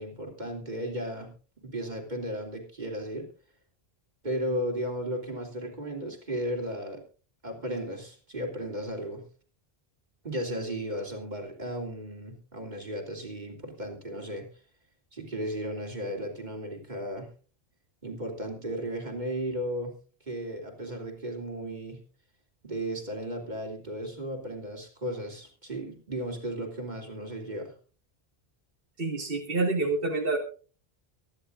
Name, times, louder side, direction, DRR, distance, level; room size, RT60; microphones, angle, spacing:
voice 1, 0.0-1.3 1.6-3.3 4.2-7.0 7.4-9.2 10.2-14.5 15.1-17.3 18.0-19.9 20.3-22.0 22.6-27.7, equal, 45° right, 2 dB, 3.3 m, -35 dB
voice 2, 29.0-30.4, right 3 dB, 60° right, 0 dB, 2.1 m, -27 dB
24.0 x 10.5 x 2.6 m, 0.36 s
omnidirectional pair, 1.1 m